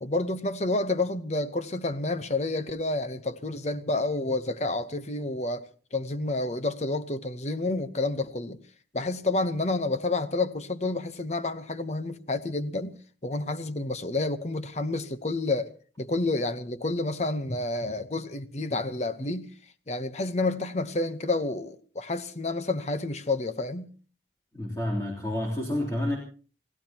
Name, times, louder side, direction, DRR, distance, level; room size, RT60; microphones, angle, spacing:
voice 1, 0.0-5.6 5.9-8.6 8.9-12.9 13.2-15.7 16.0-19.5 19.9-23.9, left 2 dB, 40° left, 0.9 m, -29 dB
voice 2, 24.5-26.2, left 1 dB, 20° left, 3.4 m, -29 dB
28.5 x 17.0 x 2.9 m
head